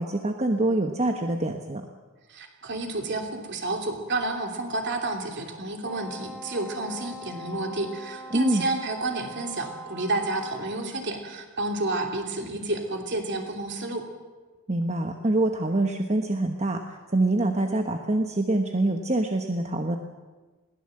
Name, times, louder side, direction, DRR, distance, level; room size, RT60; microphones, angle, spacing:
voice 1, 0.0-1.8 8.3-8.6 14.7-20.0, right 2 dB, 30° right, 4 dB, 1.1 m, -25 dB
voice 2, 2.3-14.0, right 2 dB, 55° right, 3 dB, 3.0 m, -30 dB
Wind instrument woodwind instrument, 5.8-10.9, equal, 5° right, 3.1 m, -42 dB
21.5 x 17.5 x 7.7 m, 1.3 s
head